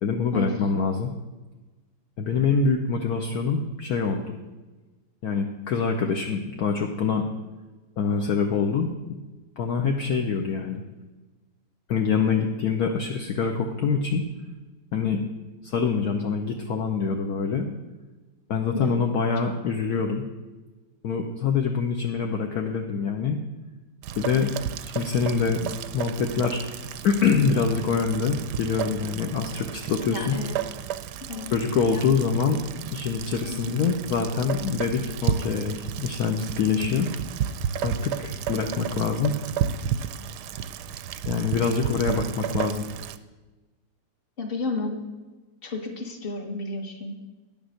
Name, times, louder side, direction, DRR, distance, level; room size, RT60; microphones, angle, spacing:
voice 1, 0.0-1.1 2.2-4.4 5.2-7.2 8.0-8.9 9.6-10.8 11.9-14.2 14.9-15.2 15.6-17.7 18.5-20.2 21.0-23.4 24.2-24.5 24.9-26.6 27.0-30.4 31.5-37.1 37.8-39.3 41.3-42.8, left 5 dB, 60° left, 3 dB, 1.2 m, -25 dB
Rain, 24.0-43.2, right 9 dB, 75° right, 1.1 m, -33 dB
voice 2, 30.1-30.5 31.2-31.5 31.9-32.1 33.5-33.8 38.8-38.9 41.6-41.8 42.1-42.3 44.4-45.0 45.6-47.1, left 3 dB, 35° left, 4 dB, 1.4 m, -32 dB
10.5 x 7.2 x 6.4 m, 1.2 s
omnidirectional pair, 2.0 m